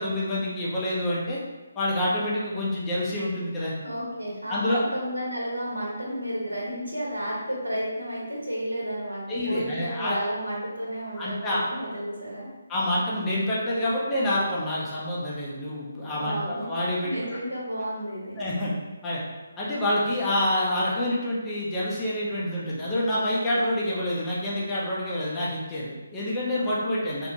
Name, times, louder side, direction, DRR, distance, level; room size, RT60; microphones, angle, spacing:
voice 1, 0.0-1.4 1.7-3.7 4.5-4.8 9.3-10.2 11.2-11.7 12.7-17.1 18.4-18.7 19.0-19.2 19.6-27.3, left 1 dB, 15° left, -7 dB, 0.6 m, -27 dB
voice 2, 3.8-12.5 16.1-16.7 17.0-18.4, equal, 85° right, -4 dB, 0.9 m, -32 dB
2.9 x 2.1 x 2.6 m, 1.2 s
figure-of-eight pair, 145°, 0 cm